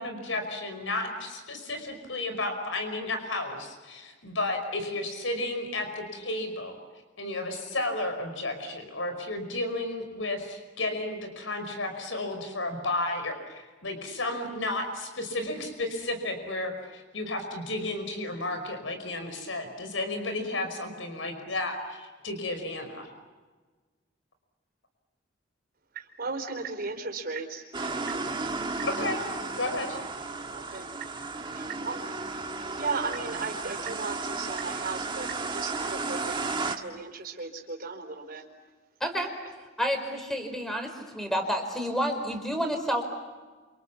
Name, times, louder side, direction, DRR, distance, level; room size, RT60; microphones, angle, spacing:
voice 1, 0.0-6.8 7.2-23.1 28.8-29.2 29.5-30.0, left 2 dB, 80° left, 6 dB, 5.2 m, -33 dB
voice 2, 25.9-27.6 30.5-30.9 31.5-32.3 32.7-38.4, right 4 dB, 50° right, 4 dB, 4.3 m, -36 dB
sound 1, 27.7-36.8, right 3 dB, 25° right, 1.7 m, -34 dB
voice 3, 39.0-39.3 39.8-43.0, equal, ahead, 5 dB, 4.8 m, -29 dB
29.5 x 27.5 x 7.2 m, 1.3 s
head